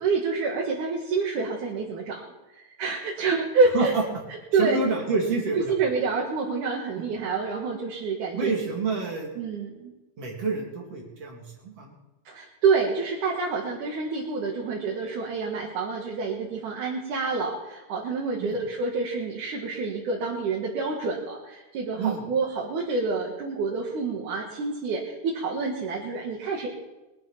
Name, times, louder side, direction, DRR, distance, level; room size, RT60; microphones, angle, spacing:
voice 1, 0.0-2.2 2.8-3.9 4.5-4.8 5.5-8.5 9.4-9.9 12.3-26.7, right 4 dB, 75° right, -2 dB, 3.2 m, -27 dB
voice 2, 4.5-5.7 7.0-7.1 8.3-9.3 10.2-12.0 18.4-18.6 22.0-22.2, right 4 dB, 50° right, -2 dB, 3.8 m, -28 dB
22.5 x 9.0 x 5.9 m, 1.1 s
omnidirectional pair, 3.6 m